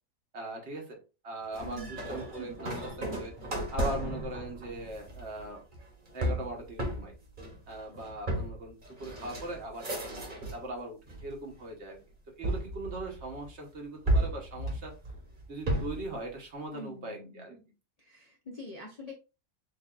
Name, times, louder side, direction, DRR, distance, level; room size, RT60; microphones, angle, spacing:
voice 1, 0.3-3.3 3.7-5.6 6.1-7.1 7.7-12.0 12.3-14.9 15.5-17.6, right 2 dB, 55° right, 1 dB, 1.3 m, -40 dB
sound 1, 1.5-10.7 11.1-11.7 12.4-13.5 14.1-16.1, right 1 dB, 35° right, 1.3 m, -34 dB
voice 2, 1.6-2.1 16.7-17.6 18.0-19.1, left 1 dB, 40° left, -1 dB, 0.6 m, -45 dB
6.6 x 2.7 x 2.4 m, 0.30 s
omnidirectional pair, 1.5 m